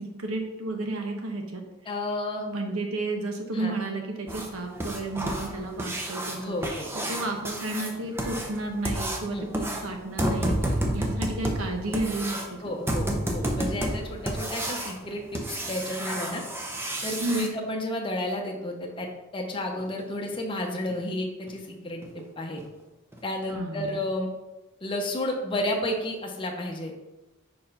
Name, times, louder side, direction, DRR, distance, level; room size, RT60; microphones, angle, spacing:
voice 1, 0.0-1.6 2.5-6.6 6.9-12.4 17.2-17.5 23.5-24.0, right 2 dB, 70° right, 3 dB, 1.0 m, -32 dB
voice 2, 1.8-2.4 3.5-3.7 6.4-6.9 9.3-9.5 10.4-10.5 12.6-16.4 17.0-22.6 23.2-24.3 24.8-26.9, left 1 dB, 25° left, 0 dB, 0.8 m, -32 dB
sound 1, 4.3-17.5 19.8-19.9 20.3-20.4 20.9-21.0 21.5-21.6 22.0-22.2 22.6-22.7 23.1-23.2, right 1 dB, 10° right, 0.6 m, -31 dB
4.6 x 4.3 x 5.3 m, 1.0 s
head